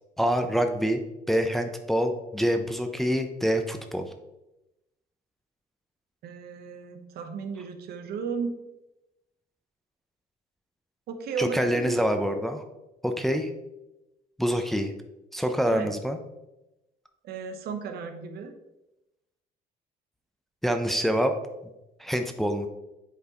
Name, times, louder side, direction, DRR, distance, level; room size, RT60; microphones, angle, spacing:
voice 1, 0.2-1.0 1.3-4.0 11.4-12.6 13.0-13.5 14.4-14.9 15.3-16.2 20.6-21.3 22.0-22.7, equal, ahead, 6 dB, 0.6 m, -26 dB
voice 2, 6.2-8.6 11.1-12.0 15.7-15.9 17.2-18.5, right 5 dB, 70° right, 6 dB, 0.9 m, -34 dB
8.2 x 4.6 x 2.9 m, 0.94 s
cardioid pair, 110°, 17 cm